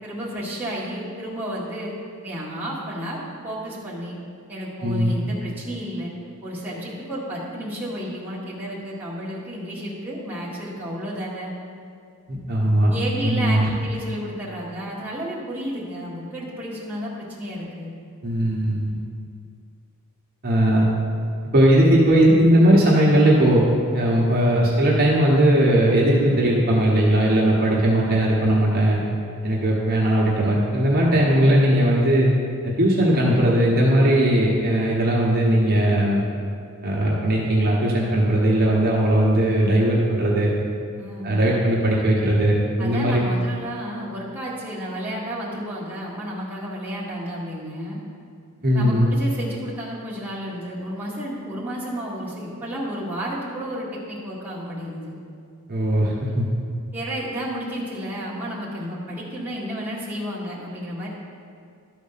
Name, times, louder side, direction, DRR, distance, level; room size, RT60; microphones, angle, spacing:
voice 1, 0.0-1.9 2.2-4.1 4.5-6.1 6.4-11.5 12.9-17.9 41.0-41.4 42.8-48.0 48.7-55.1 56.9-61.1, equal, 10° right, -7 dB, 1.7 m, -32 dB
voice 2, 4.8-5.1 12.3-12.9 13.2-13.7 18.2-19.0 20.4-20.8 21.5-23.6 23.9-29.0 29.4-32.3 32.6-36.2 36.8-40.5 41.2-43.2 48.6-49.1 55.7-56.5, right 1 dB, 45° right, -4 dB, 1.3 m, -18 dB
12.5 x 4.2 x 5.7 m, 2.3 s
head